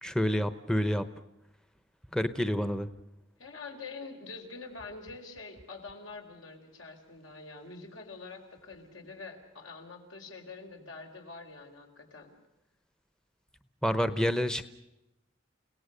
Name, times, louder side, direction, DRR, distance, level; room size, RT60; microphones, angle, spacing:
voice 1, 0.0-1.0 2.1-2.9 13.8-14.6, equal, 5° left, 11 dB, 0.8 m, -28 dB
voice 2, 3.4-12.3, left 3 dB, 80° left, 3 dB, 4.7 m, -45 dB
30.0 x 18.0 x 6.7 m, 0.91 s
head